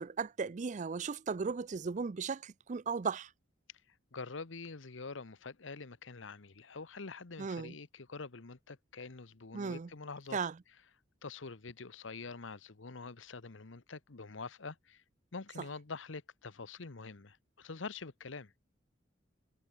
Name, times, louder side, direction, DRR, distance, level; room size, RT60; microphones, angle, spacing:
voice 1, 0.0-3.3 7.4-7.7 9.5-9.9 10.3-10.5, right 5 dB, 40° right, 0.4 m, -36 dB
voice 2, 4.1-10.4 11.2-15.0 15.3-18.5, left 4 dB, 85° left, 1.1 m, -46 dB
head